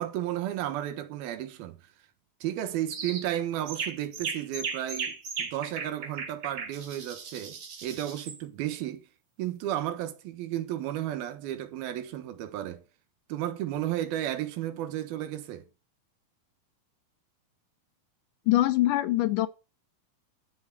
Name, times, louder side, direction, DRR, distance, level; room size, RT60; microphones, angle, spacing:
voice 1, 0.0-1.8 2.4-9.1 9.4-12.8 13.3-15.7, right 12 dB, 90° right, 3.1 m, -33 dB
sound 1, 2.9-3.3 3.7-8.4, right 5 dB, 45° right, 1.7 m, -37 dB
voice 2, 18.5-19.5, left 15 dB, 75° left, 2.0 m, -23 dB
13.5 x 6.1 x 6.4 m
omnidirectional pair, 4.2 m